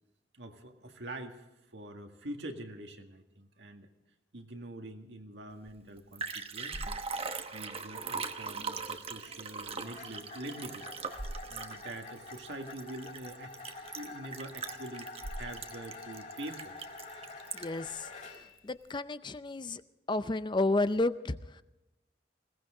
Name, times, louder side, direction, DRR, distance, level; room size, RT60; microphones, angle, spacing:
voice 1, 0.3-3.9 4.3-7.0 7.5-10.9 11.5-13.6 13.9-16.7, right 1 dB, 80° right, 4 dB, 1.9 m, -45 dB
Liquid, 5.7-5.8 6.0-17.9 18.3-18.4, right 4 dB, 35° right, 1.0 m, -40 dB
sound 1, 9.1-18.6, left 3 dB, 45° left, 3.6 m, -47 dB
voice 2, 17.5-18.1 18.6-19.8 20.1-21.6, left 2 dB, 25° left, 13 dB, 0.5 m, -31 dB
21.0 x 17.5 x 3.8 m, 0.94 s
head